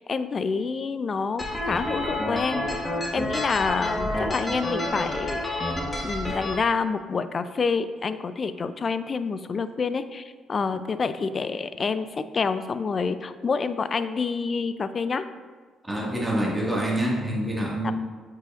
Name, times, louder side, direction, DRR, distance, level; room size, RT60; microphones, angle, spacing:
voice 1, 0.0-2.7 3.1-5.4 6.0-15.2 17.8-17.9, left 5 dB, 40° left, 12 dB, 0.4 m, -27 dB
sound 1, 1.4-6.5, left 1 dB, 20° left, 1.4 m, -29 dB
voice 2, 15.8-17.9, right 1 dB, 15° right, -4 dB, 1.8 m, -26 dB
7.7 x 5.6 x 2.5 m, 1.5 s
cardioid pair, 90°, 0 cm